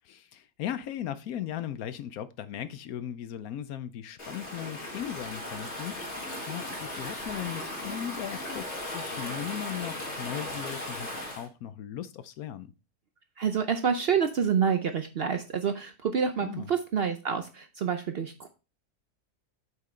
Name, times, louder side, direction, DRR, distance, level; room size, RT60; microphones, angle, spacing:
voice 1, 0.0-11.1 11.4-12.7 16.4-16.7, left 10 dB, 70° left, 1.0 m, -37 dB
Stream / Ocean, 4.2-11.5, left 1 dB, 45° left, 2.3 m, -37 dB
voice 2, 13.4-18.5, right 7 dB, 65° right, 0.6 m, -28 dB
7.4 x 6.0 x 3.2 m
omnidirectional pair, 1.7 m